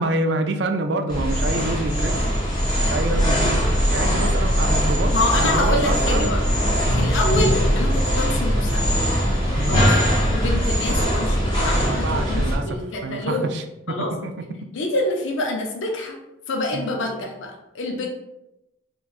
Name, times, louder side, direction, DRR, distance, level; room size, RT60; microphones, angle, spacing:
voice 1, 0.0-2.2 2.8-3.6 3.9-6.3 9.6-9.8 11.7-14.5 16.7-17.0, right 2 dB, 65° right, 7 dB, 0.3 m, -27 dB
sound 1, 1.1-12.5, equal, 25° left, 0.9 m, -21 dB
voice 2, 5.1-6.4 7.0-9.0 9.6-9.9 10.3-13.5 13.9-14.1 14.7-16.2 16.5-18.1, left 2 dB, 90° left, 1 dB, 0.5 m, -26 dB
3.8 x 2.2 x 2.4 m, 0.90 s
head